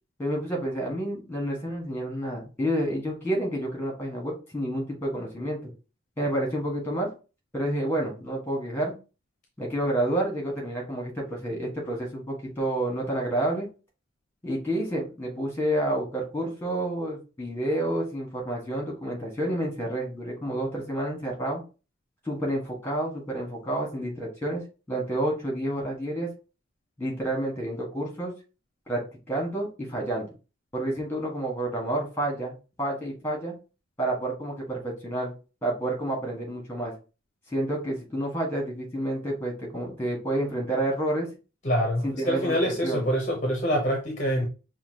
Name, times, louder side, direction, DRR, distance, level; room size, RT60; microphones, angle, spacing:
voice 1, 0.2-5.7 6.2-7.1 7.5-8.9 9.6-13.7 14.4-21.6 22.2-24.6 24.9-26.3 27.0-28.3 28.9-29.0 29.3-30.3 30.7-33.5 34.0-35.3 35.6-36.9 37.5-41.3 42.0-42.5 42.8-43.0, right 1 dB, 10° left, 1.4 m, -29 dB
voice 2, 41.6-44.5, equal, 35° left, 0.7 m, -25 dB
5.6 x 2.3 x 2.8 m
head